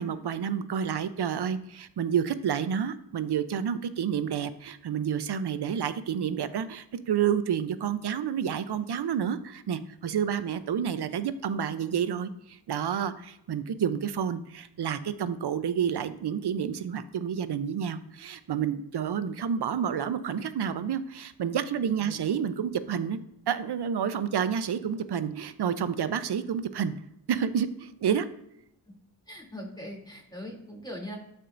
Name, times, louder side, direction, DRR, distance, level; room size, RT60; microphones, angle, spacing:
voice 1, 0.0-23.2 23.5-26.9 27.3-28.3, right 8 dB, 65° right, 12 dB, 0.7 m, -29 dB
voice 2, 29.3-31.2, equal, 10° left, -1 dB, 2.8 m, -41 dB
12.0 x 4.5 x 2.6 m, 0.80 s
cardioid pair, 55°, 44 cm